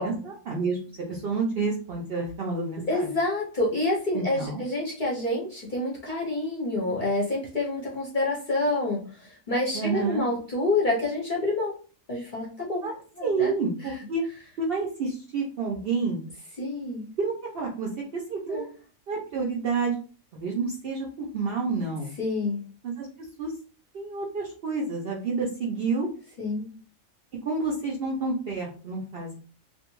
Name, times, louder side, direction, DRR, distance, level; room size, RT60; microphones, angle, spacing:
voice 1, 0.0-3.1 4.1-4.6 9.7-10.3 12.8-12.9 13.2-14.2 14.6-16.2 17.2-18.7 19.1-20.0 20.3-22.1 22.8-23.1 23.4-23.5 23.9-26.1 27.4-29.3, right 4 dB, 65° right, -1 dB, 0.6 m, -29 dB
voice 2, 2.9-9.0 9.5-11.7 12.1-12.9 13.2-13.5 16.6-17.0 18.5-18.7 22.2-22.6 26.4-26.7, left 2 dB, 50° left, -3 dB, 0.6 m, -27 dB
2.4 x 2.2 x 2.9 m, 0.40 s
omnidirectional pair, 1.4 m